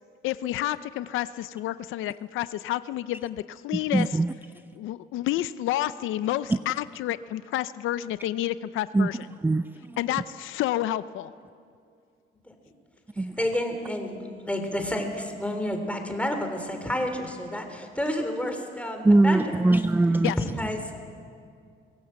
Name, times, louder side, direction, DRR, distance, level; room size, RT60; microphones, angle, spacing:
voice 1, 0.2-4.2 4.8-9.3 10.0-11.3 20.2-20.4, left 14 dB, 85° left, 15 dB, 0.5 m, -29 dB
voice 2, 3.7-4.3 6.5-6.6 8.9-9.1 9.4-10.0 13.2-13.4 19.0-20.3, right 2 dB, 10° right, 14 dB, 0.4 m, -22 dB
voice 3, 13.2-19.7 20.4-21.0, left 1 dB, 5° left, 5 dB, 3.4 m, -30 dB
23.5 x 17.0 x 7.6 m, 2.3 s
cardioid pair, 90°, 20 cm